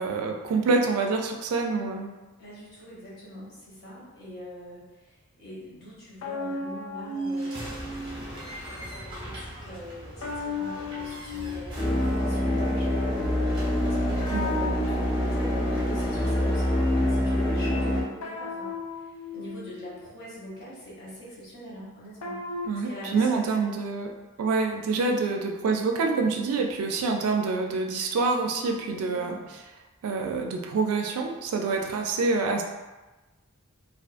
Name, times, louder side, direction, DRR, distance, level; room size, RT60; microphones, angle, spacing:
voice 1, 0.0-2.1 14.3-14.5 22.6-24.1 24.4-29.4 30.0-32.6, right 4 dB, 85° right, 2 dB, 0.4 m, -26 dB
voice 2, 2.4-13.2 13.8-18.7 19.3-22.4 22.8-23.7 28.9-29.5 31.9-32.1, equal, 50° left, -7 dB, 1.0 m, -43 dB
sound 1, 6.2-8.5 10.2-12.3 14.2-16.2 18.2-20.1 22.2-22.7, left 2 dB, 85° left, 0.4 m, -35 dB
sound 2, 7.2-17.1, equal, 20° right, 0.7 m, -42 dB
sound 3, 11.8-18.0, left 1 dB, 20° left, 0.5 m, -25 dB
2.4 x 2.4 x 2.4 m, 1.1 s
head